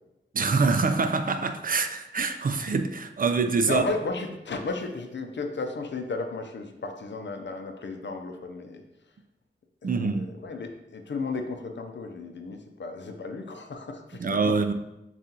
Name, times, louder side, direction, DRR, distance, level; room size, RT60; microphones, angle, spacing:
voice 1, 0.3-3.8 9.8-10.3 14.1-14.7, right 4 dB, 45° right, 8 dB, 0.4 m, -25 dB
voice 2, 3.7-8.8 9.8-14.6, left 3 dB, 65° left, 5 dB, 0.6 m, -34 dB
7.3 x 2.5 x 2.8 m, 0.94 s
cardioid pair, 45°, 20 cm